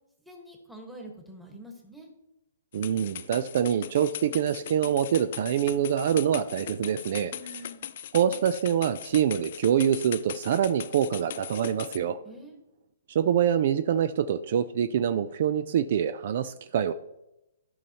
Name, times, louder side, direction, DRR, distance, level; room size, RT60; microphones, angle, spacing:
voice 1, 0.2-2.1 7.3-7.9 12.2-12.7, equal, ahead, 0 dB, 1.4 m, -46 dB
sound 1, 2.7-12.0, left 10 dB, 50° left, 0.4 m, -40 dB
voice 2, 2.7-7.3 8.1-12.2 13.1-16.9, right 9 dB, 50° right, 11 dB, 0.4 m, -25 dB
13.5 x 5.5 x 2.9 m, 0.89 s
hypercardioid pair, 160°, 0 cm